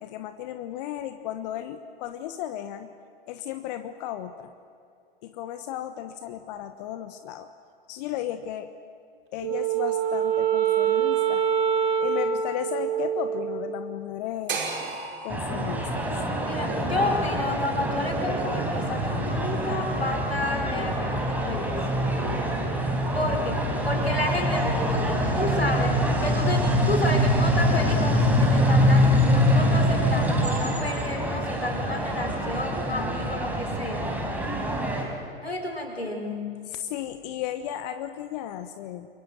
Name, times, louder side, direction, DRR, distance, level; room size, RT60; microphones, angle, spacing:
voice 1, 0.0-2.9 3.3-4.5 5.2-7.5 7.9-8.7 9.3-11.4 12.0-14.6 15.2-16.1 36.8-39.1, left 11 dB, 45° left, 10 dB, 1.3 m, -34 dB
Wind instrument woodwind instrument, 9.4-13.9, right 9 dB, 40° right, 3.4 m, -25 dB
sound 1, 14.5-18.6, right 4 dB, 60° right, 5.7 m, -37 dB
sound 2, 15.3-35.0, equal, 5° right, 4.6 m, -24 dB
voice 2, 16.4-21.9 23.1-34.2 35.4-36.5, left 2 dB, 85° left, 3 dB, 4.5 m, -31 dB
29.0 x 23.0 x 7.7 m, 2.4 s
figure-of-eight pair, 95°, 30 cm